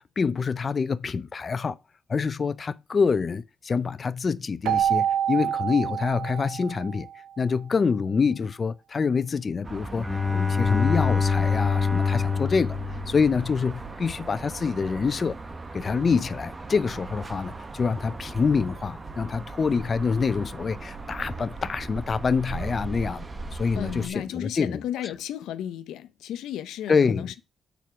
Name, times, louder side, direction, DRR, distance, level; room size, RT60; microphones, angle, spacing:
voice 1, 0.0-1.8 2.1-7.1 7.4-12.8 13.1-15.3 15.7-23.3 23.5-24.8 26.9-27.3, left 5 dB, 35° left, 0.5 m, -26 dB
Keyboard (musical), 4.6-7.3, right 9 dB, 85° right, 0.9 m, -27 dB
sound 1, 9.6-24.1, right 4 dB, 25° right, 0.9 m, -38 dB
Bowed string instrument, 9.9-13.7, left 5 dB, ahead, 1.2 m, -25 dB
voice 2, 23.8-27.4, left 11 dB, 85° left, 0.6 m, -34 dB
7.0 x 4.5 x 5.9 m
cardioid pair, 90°, 0 cm